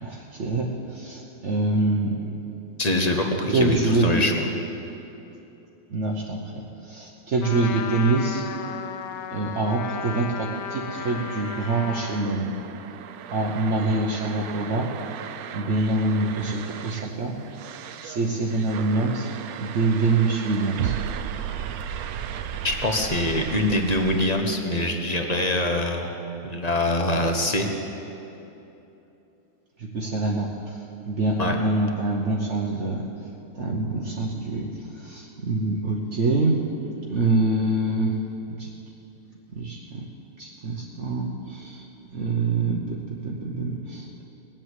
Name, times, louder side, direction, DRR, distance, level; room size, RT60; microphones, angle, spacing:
voice 1, 0.0-2.2 3.5-4.2 5.9-8.5 9.3-12.5 13.3-14.9 15.5-17.4 18.0-19.3 19.6-20.9 29.8-33.1 33.5-38.2 38.6-38.7 39.5-40.0 40.4-41.8 42.1-44.2, right 2 dB, 55° right, -2 dB, 1.3 m, -25 dB
voice 2, 2.8-4.5 22.6-26.1 26.4-27.7 31.4-31.6, left 1 dB, 30° left, 3 dB, 1.2 m, -24 dB
Trumpet, 7.4-12.3, left 7 dB, 80° left, 1.2 m, -35 dB
sound 1, 10.5-24.3, right 9 dB, 85° right, 1.1 m, -36 dB
20.0 x 7.6 x 8.2 m, 2.9 s
omnidirectional pair, 1.5 m